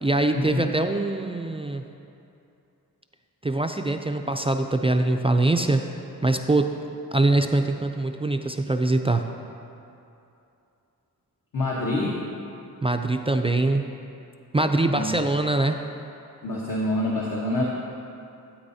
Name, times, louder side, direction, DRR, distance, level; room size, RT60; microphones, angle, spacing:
voice 1, 0.0-1.8 3.4-5.8 6.2-6.7 7.1-9.3 12.8-13.8 14.5-15.8, right 2 dB, 15° right, 5 dB, 0.3 m, -23 dB
voice 2, 11.5-12.2 14.8-15.1 16.4-17.6, left 1 dB, 60° left, -4 dB, 1.2 m, -26 dB
13.0 x 8.4 x 2.7 m, 2.7 s
wide cardioid pair, 100°, 37 cm